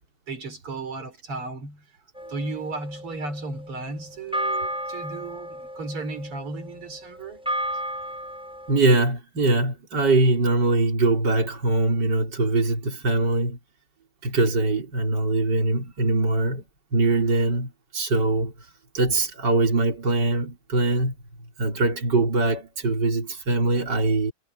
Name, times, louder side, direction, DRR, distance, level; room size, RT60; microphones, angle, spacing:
voice 1, 0.3-1.9 2.3-7.4, right 3 dB, 90° right, 5.1 m, -34 dB
sound 1, 2.2-8.8, equal, ahead, 7.4 m, -33 dB
voice 2, 8.7-13.6 14.2-16.6 16.9-18.5 18.9-21.1 21.6-24.3, right 2 dB, 50° right, 4.8 m, -22 dB
omnidirectional pair, 2.4 m